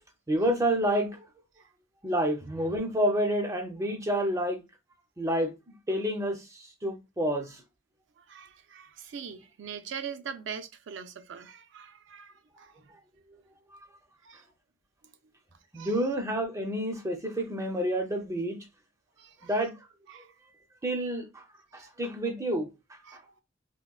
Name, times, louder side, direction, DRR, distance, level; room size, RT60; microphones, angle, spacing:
voice 1, 0.3-1.2 2.0-4.6 5.2-5.5 5.9-7.6 15.7-18.6 19.4-19.7 20.8-21.4 21.7-22.7, right 1 dB, 15° right, 0.5 m, -29 dB
voice 2, 8.2-12.9 14.2-14.4 15.0-15.3 15.7-16.0 19.2-19.6 20.1-20.3 21.7-21.9 23.0-23.2, right 7 dB, 65° right, 0.4 m, -43 dB
3.6 x 2.1 x 2.3 m
head